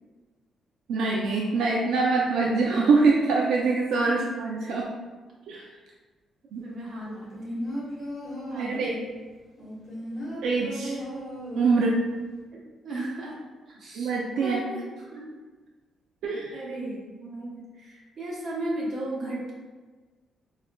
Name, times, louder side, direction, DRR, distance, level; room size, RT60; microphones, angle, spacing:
voice 1, 0.9-4.9 5.5-5.7 6.5-6.6 8.5-8.9 10.4-11.0 11.6-12.0 13.9-14.6 16.2-16.5, right 4 dB, 80° right, -3 dB, 0.3 m, -24 dB
voice 2, 6.6-7.6 8.5-9.2 12.5-13.4 13.7-15.3 16.5-19.5, right 1 dB, 50° right, -4 dB, 0.8 m, -36 dB
sound 1, 7.1-9.0 9.6-12.0 12.3-12.4, equal, 30° left, 1.2 m, -36 dB
4.1 x 2.4 x 2.2 m, 1.3 s
cardioid pair, 170°, 0 cm